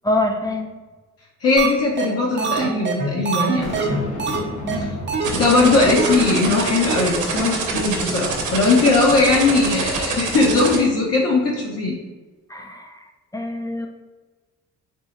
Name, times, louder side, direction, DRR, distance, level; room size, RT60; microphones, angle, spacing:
voice 1, 0.0-0.7 4.6-5.0 12.5-13.0 13.3-13.9, left 1 dB, 10° left, 3 dB, 0.3 m, -25 dB
voice 2, 1.4-3.8 4.8-4.9 5.3-12.0, left 3 dB, 55° left, -3 dB, 0.7 m, -19 dB
sound 1, 1.6-1.7 2.0-2.1 2.4-4.4 4.7-4.8 5.1-5.3 5.6-5.7 6.0-6.2 6.5-6.6 6.9-7.0 7.4-7.5 7.7-7.8, right 6 dB, 40° right, 0.6 m, -23 dB
Boom, 3.6-6.9, left 1 dB, 90° left, 1.3 m, -33 dB
sound 2, 5.2-10.8, right 4 dB, 85° right, 0.7 m, -25 dB
3.5 x 2.0 x 4.0 m, 1.3 s
cardioid pair, 90°, 30 cm